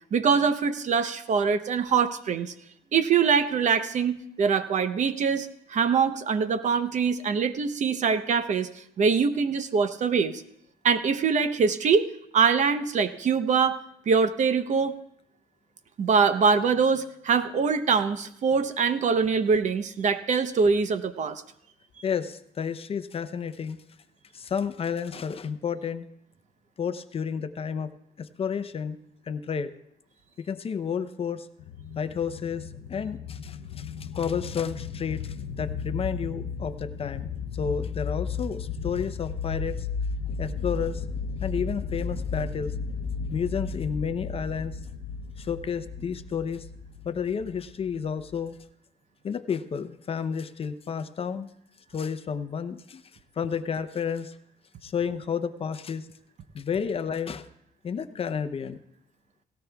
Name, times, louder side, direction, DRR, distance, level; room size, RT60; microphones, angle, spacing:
voice 1, 0.1-2.5 2.9-8.7 9.0-10.4 10.8-12.1 12.3-13.8 14.1-15.0 16.0-21.4, right 5 dB, 45° right, 11 dB, 0.8 m, -23 dB
voice 2, 22.0-23.8 24.3-26.1 26.8-29.0 29.3-29.7 30.5-31.5 32.0-39.9 40.4-41.0 41.4-42.8 43.3-44.8 45.4-46.7 47.0-48.5 49.2-51.5 51.9-53.0 53.4-54.4 54.8-56.1 56.5-57.5 57.8-58.8, left 6 dB, 35° left, 11 dB, 0.7 m, -31 dB
sound 1, 31.6-48.6, left 5 dB, 80° left, 0.7 m, -34 dB
17.5 x 17.0 x 2.3 m, 0.74 s
cardioid pair, 110°, 17 cm